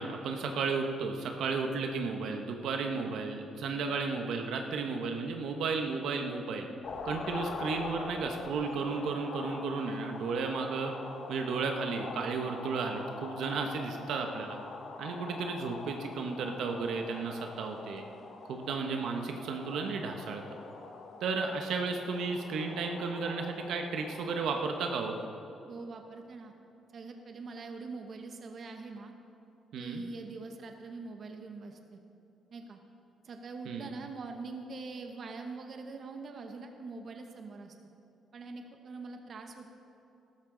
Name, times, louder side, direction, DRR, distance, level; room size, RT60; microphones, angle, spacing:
voice 1, 0.0-6.7 7.0-10.9 11.3-14.6 15.0-18.0 18.5-20.6 21.2-25.1 29.7-30.0 33.6-33.9, right 4 dB, 75° right, 3 dB, 1.1 m, -33 dB
sound 1, 6.8-25.3, left 4 dB, 55° left, 1.2 m, -44 dB
voice 2, 25.7-26.5 26.9-29.1 29.7-32.0 32.5-32.8 33.2-37.8 38.3-39.7, right 3 dB, 50° right, 5 dB, 1.0 m, -43 dB
13.5 x 13.0 x 3.9 m, 2.8 s
cardioid pair, 90°, 0 cm